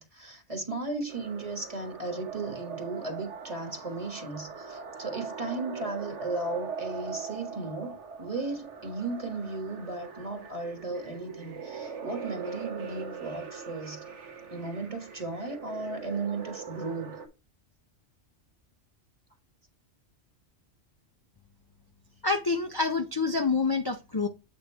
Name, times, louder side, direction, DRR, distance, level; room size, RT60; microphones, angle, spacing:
voice 1, 0.0-14.1 14.5-17.2, right 3 dB, 30° right, 1.4 m, -35 dB
sound 1, 1.1-17.3, right 5 dB, 85° right, 1.5 m, -41 dB
voice 2, 22.2-24.3, left 4 dB, 30° left, 0.5 m, -27 dB
7.9 x 3.7 x 4.5 m
omnidirectional pair, 1.2 m